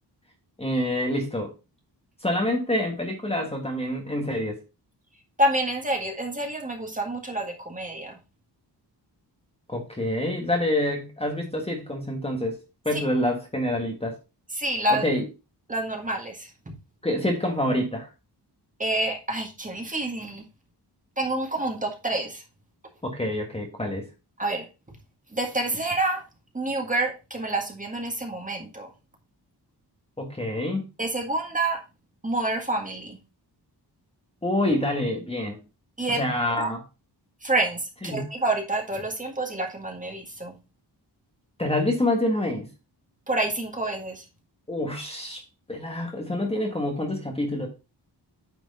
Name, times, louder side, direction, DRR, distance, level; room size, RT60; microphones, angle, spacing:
voice 1, 0.6-1.5 2.2-4.6 9.7-12.6 12.8-14.2 14.9-15.3 17.0-18.1 23.0-24.1 30.2-30.8 34.4-35.6 36.1-36.8 38.0-38.2 41.6-42.7 44.7-47.7, left 1 dB, 15° left, 2 dB, 1.5 m, -27 dB
voice 2, 5.4-8.1 12.9-13.0 14.6-15.0 15.7-16.8 18.8-20.4 21.2-22.4 24.4-24.7 25.3-26.2 26.5-28.9 31.0-31.8 32.2-33.2 36.0-36.2 36.5-36.7 37.4-40.6 43.3-44.3, right 2 dB, 20° right, 2 dB, 1.8 m, -28 dB
9.3 x 4.6 x 4.1 m, 0.29 s
wide cardioid pair, 160°, 42 cm